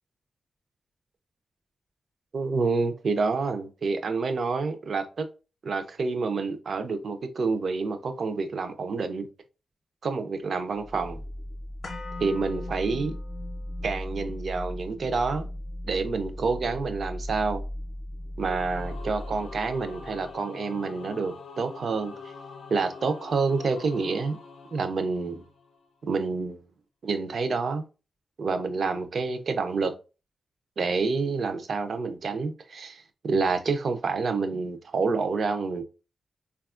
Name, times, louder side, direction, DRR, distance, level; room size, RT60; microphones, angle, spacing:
voice 1, 2.3-5.3 5.6-9.3 10.0-11.2 12.2-13.2 13.8-15.5 15.9-17.6 18.4-22.3 22.7-24.4 24.7-25.4 26.0-26.6 27.0-27.9 28.4-29.9 30.8-35.8, right 4 dB, 60° right, 0.4 m, -28 dB
sound 1, 10.7-20.4, equal, 5° left, 0.4 m, -37 dB
sound 2, 11.8-19.9 20.2-20.3, left 3 dB, 50° left, 0.6 m, -46 dB
Singing / Musical instrument, 18.4-25.9, left 5 dB, 90° left, 0.4 m, -44 dB
4.2 x 2.2 x 2.3 m
wide cardioid pair, 165°, 0 cm